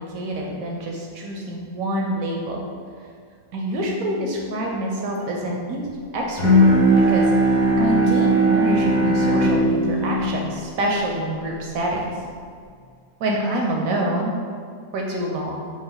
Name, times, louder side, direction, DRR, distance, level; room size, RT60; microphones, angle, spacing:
voice 1, 0.0-2.6 3.5-5.8 6.1-6.7 7.1-7.3 7.8-12.1 13.2-14.4 14.9-15.6, right 1 dB, 70° right, -1 dB, 0.9 m, -26 dB
sound 1, 3.7-4.3 6.8-7.8 9.4-10.4, left 5 dB, 65° left, 1.0 m, -32 dB
Bowed string instrument, 6.4-11.8, right 1 dB, 45° left, 1.6 m, -19 dB
4.5 x 2.5 x 3.9 m, 2.2 s
omnidirectional pair, 1.7 m